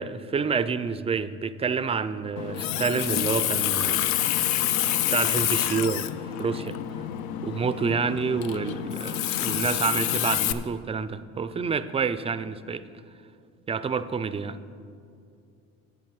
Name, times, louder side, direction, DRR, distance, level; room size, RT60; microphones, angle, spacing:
voice 1, 0.0-4.1 5.1-6.1 6.4-6.7 7.4-12.8 13.7-14.6, right 5 dB, 20° right, 13 dB, 0.3 m, -28 dB
Water tap faucet, 2.4-10.5, left 12 dB, 80° left, 0.5 m, -27 dB
11.0 x 7.9 x 4.7 m, 2.4 s
supercardioid pair, 85°, 35 cm